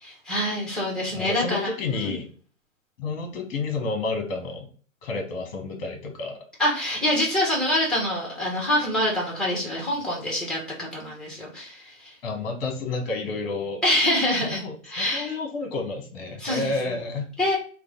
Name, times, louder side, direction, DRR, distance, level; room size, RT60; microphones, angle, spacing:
voice 1, 0.0-1.7 2.0-2.1 6.6-12.1 13.8-14.6 14.9-15.3 16.4-16.7 17.4-17.5, left 1 dB, ahead, -2 dB, 1.1 m, -25 dB
voice 2, 1.1-2.3 3.0-4.7 5.0-6.4 12.2-13.8 14.4-17.3, left 3 dB, 45° left, 3 dB, 1.2 m, -30 dB
3.2 x 2.4 x 3.6 m, 0.42 s
hypercardioid pair, 120°, 41 cm